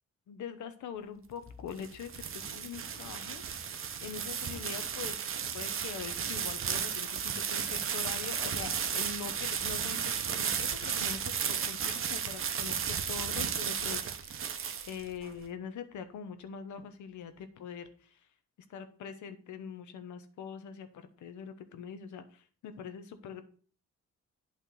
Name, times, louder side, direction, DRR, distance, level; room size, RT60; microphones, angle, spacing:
voice 1, 0.3-3.4 4.0-5.2 5.5-18.2 18.7-23.4, left 7 dB, 75° left, 10 dB, 1.0 m, -43 dB
sound 1, 1.5-15.3, right 7 dB, 45° right, 0.9 m, -34 dB
8.5 x 3.6 x 6.2 m, 0.42 s
cardioid pair, 90°, 30 cm